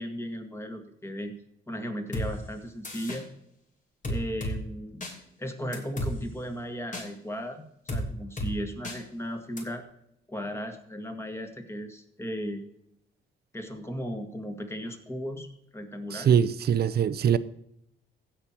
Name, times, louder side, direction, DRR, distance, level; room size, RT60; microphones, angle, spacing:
voice 1, 0.0-1.3 1.7-3.3 4.1-5.0 5.4-7.6 7.9-9.8 10.3-12.6 13.5-15.5 15.7-16.4, equal, 15° left, 2.0 m, -36 dB
sound 1, 2.1-2.3 2.8-3.2 4.0-4.5 5.0-5.1 5.7-6.1 6.9-7.1 7.9-8.0 8.4-8.5 8.8-9.0 9.6-9.7, equal, 40° left, 2.9 m, -32 dB
voice 2, 16.1-17.4, right 8 dB, 55° right, 0.6 m, -23 dB
15.5 x 5.7 x 4.5 m
cardioid pair, 90°, 20 cm